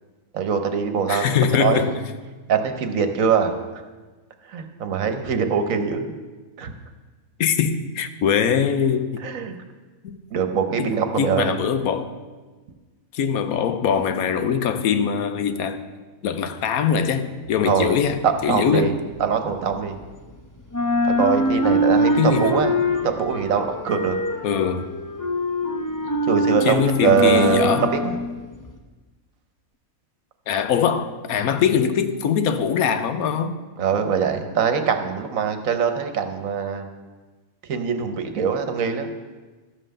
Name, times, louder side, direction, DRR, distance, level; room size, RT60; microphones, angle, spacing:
voice 1, 0.3-1.9 2.5-3.5 4.5-6.1 6.6-6.7 9.2-9.5 10.3-11.5 17.6-18.0 18.2-18.9 19.2-20.0 21.2-22.7 23.0-24.2 26.3-28.1 33.8-36.9 37.7-39.1, right 6 dB, 70° right, 7 dB, 1.3 m, -22 dB
voice 2, 1.1-2.0 7.4-9.2 10.0-10.2 10.8-10.9 11.2-12.1 13.1-15.8 16.2-18.9 22.2-22.6 24.4-24.9 26.6-27.9 30.5-33.5, left 7 dB, 80° left, 10 dB, 1.2 m, -22 dB
sound 1, 17.5-20.3 20.6-28.8, equal, 20° left, 0.7 m, -24 dB
12.5 x 5.6 x 6.6 m, 1.3 s
omnidirectional pair, 1.5 m